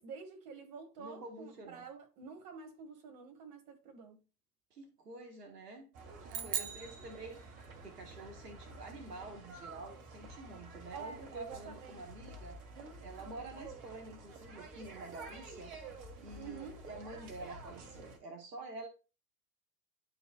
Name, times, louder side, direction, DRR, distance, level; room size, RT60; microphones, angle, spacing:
voice 1, 0.0-4.2 6.3-6.5 10.9-12.0 16.4-16.8, right 5 dB, 45° right, 1.8 m, -48 dB
voice 2, 1.0-1.9 4.7-5.9 6.2-7.4 7.8-12.6 13.0-15.7 16.2-18.9, right 2 dB, 85° right, 1.2 m, -48 dB
sound 1, 5.9-18.2, right 2 dB, 65° right, 1.9 m, -50 dB
sound 2, 6.3-7.9, right 8 dB, 20° right, 0.4 m, -40 dB
10.5 x 3.9 x 2.3 m
figure-of-eight pair, 85°, 47 cm